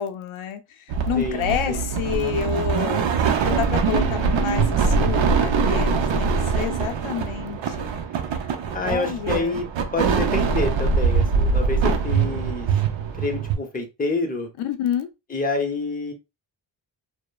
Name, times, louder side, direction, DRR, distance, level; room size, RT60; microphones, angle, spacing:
voice 1, 0.0-7.9 8.8-9.6 14.6-15.1, left 9 dB, 85° left, 0.5 m, -29 dB
sound 1, 0.9-13.6, right 5 dB, 70° right, 0.6 m, -23 dB
voice 2, 1.2-1.8 8.7-9.7 9.9-12.7 13.2-14.5 15.3-16.1, left 3 dB, 20° left, 0.7 m, -27 dB
2.9 x 2.1 x 2.2 m
wide cardioid pair, 100°, 48 cm